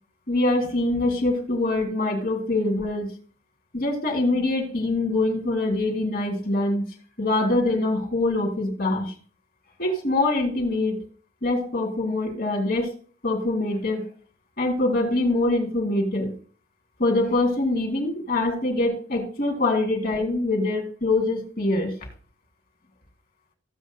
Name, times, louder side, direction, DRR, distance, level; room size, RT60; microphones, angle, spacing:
voice 1, 0.3-3.1 3.7-6.9 7.2-9.1 9.8-11.0 11.4-12.9 13.2-14.1 14.6-16.3 17.0-21.9, left 2 dB, 50° left, 2.9 m, -24 dB
15.5 x 8.3 x 2.3 m
head